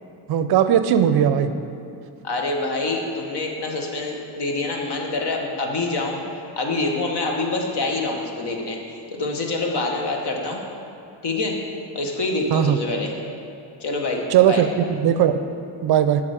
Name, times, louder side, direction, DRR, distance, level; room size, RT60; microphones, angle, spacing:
voice 1, 0.3-1.5 12.5-12.8 14.3-15.4 15.8-16.2, right 9 dB, 55° right, 10 dB, 0.5 m, -18 dB
voice 2, 2.2-6.2 6.6-10.6 11.2-11.6 11.9-13.1 13.8-14.6, left 2 dB, 55° left, 2 dB, 1.4 m, -26 dB
8.5 x 5.9 x 5.0 m, 2.6 s
cardioid pair, 85°, 48 cm